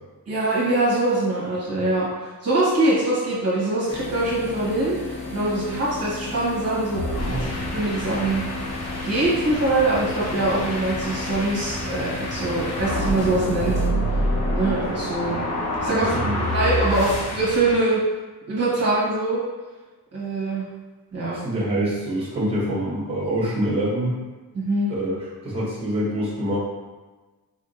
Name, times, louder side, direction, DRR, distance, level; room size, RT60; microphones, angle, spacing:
voice 1, 0.3-5.0 5.3-7.0 7.4-8.4 9.0-13.8 14.5-15.4 15.8-16.2 16.5-18.0 18.5-19.4 20.1-20.7 21.1-21.4 24.5-24.9, right 2 dB, 40° right, -7 dB, 1.1 m, -23 dB
sound 1, 3.9-13.9, left 3 dB, 70° left, 1.1 m, -34 dB
sound 2, 6.9-17.8, equal, 45° left, 0.7 m, -27 dB
voice 2, 15.8-16.4 21.3-24.2 24.9-26.6, right 1 dB, 15° right, -6 dB, 1.2 m, -25 dB
4.1 x 3.5 x 2.5 m, 1.2 s
wide cardioid pair, 155°, 38 cm